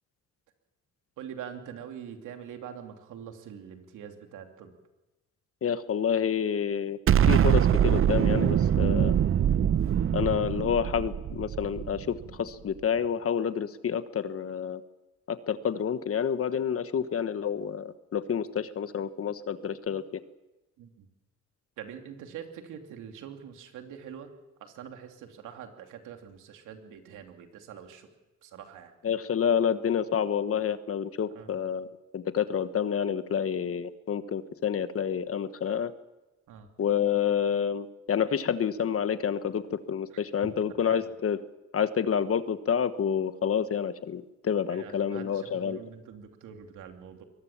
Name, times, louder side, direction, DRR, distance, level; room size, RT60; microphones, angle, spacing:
voice 1, 1.2-4.7 20.8-21.1 21.8-24.3 24.6-28.1 28.4-28.9 31.3-31.5 36.5-36.7 40.1-40.2 40.9-41.0 44.7-47.2, right 8 dB, 85° right, 4 dB, 2.9 m, -44 dB
voice 2, 5.6-7.0 7.3-9.1 10.1-14.8 15.3-20.2 29.0-35.9 36.8-41.4 41.7-45.8, left 8 dB, 50° left, 12 dB, 1.2 m, -28 dB
Explosion, 7.1-12.2, right 9 dB, 45° right, 0.7 m, -23 dB
23.0 x 19.0 x 7.3 m, 1.0 s
cardioid pair, 90°, 30 cm